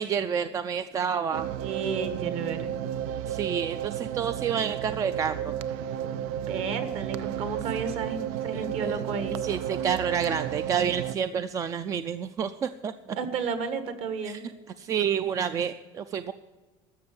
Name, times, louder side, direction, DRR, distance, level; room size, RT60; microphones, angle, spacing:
voice 1, 0.0-1.5 3.3-5.5 8.5-9.0 9.4-13.2 14.2-14.4 14.8-16.3, right 7 dB, 25° right, 12 dB, 0.4 m, -29 dB
sound 1, 1.3-11.2, right 10 dB, 85° right, 0.6 m, -32 dB
voice 2, 1.6-2.7 6.5-9.4 13.1-14.4, right 5 dB, 50° right, 9 dB, 1.6 m, -32 dB
13.0 x 6.9 x 9.5 m, 1.3 s
cardioid pair, 160°, 13 cm